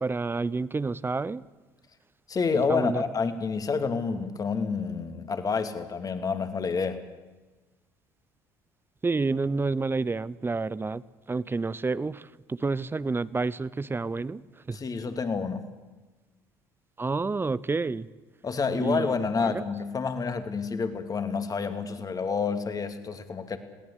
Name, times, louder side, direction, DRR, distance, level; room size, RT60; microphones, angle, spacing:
voice 1, 0.0-1.4 2.7-3.0 9.0-11.0 11.3-14.4 14.7-14.8 17.0-18.1 18.8-19.1 19.4-19.5, right 3 dB, 20° right, 19 dB, 0.7 m, -29 dB
voice 2, 2.3-7.0 14.7-15.6 18.4-23.6, left 5 dB, 35° left, 8 dB, 2.6 m, -29 dB
21.5 x 17.0 x 8.4 m, 1.2 s
hypercardioid pair, 65°, 10 cm